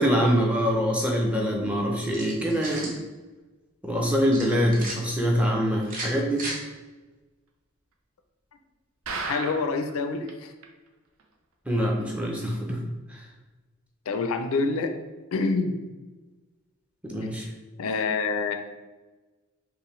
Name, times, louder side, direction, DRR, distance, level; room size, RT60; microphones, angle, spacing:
voice 1, 0.0-2.9 3.8-6.4 11.7-12.8 17.0-17.4, equal, 5° right, 0 dB, 0.5 m, -24 dB
sound 1, 2.1-3.0 4.3-5.0 5.8-6.6, right 1 dB, 40° right, 0.8 m, -35 dB
sound 2, 9.1-9.9 10.3-10.4 10.6-10.7 11.2-11.3, right 4 dB, 80° right, 0.5 m, -33 dB
voice 2, 9.3-10.5 14.1-14.9 15.3-15.8 17.8-18.5, left 4 dB, 85° left, 7 dB, 0.4 m, -26 dB
5.5 x 2.1 x 3.0 m, 1.2 s
head